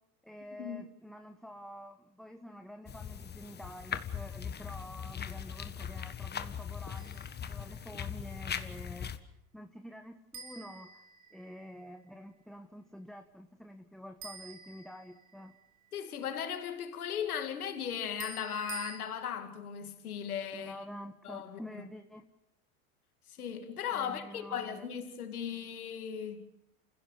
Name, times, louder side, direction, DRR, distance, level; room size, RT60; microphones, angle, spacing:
voice 1, 0.2-9.1 9.5-11.0 11.3-15.5 20.5-22.3 23.9-24.9, equal, ahead, 1.3 m, -48 dB
sound 1, 2.9-9.2, left 8 dB, 25° left, 1.5 m, -40 dB
sound 2, 7.0-7.4 10.3-11.7 14.2-15.5 18.2-19.0, right 3 dB, 40° right, 6.8 m, -47 dB
voice 2, 15.9-20.7 21.2-21.9 23.3-26.5, left 8 dB, 85° left, 2.6 m, -37 dB
29.0 x 16.0 x 8.3 m
hypercardioid pair, 95°, 43 cm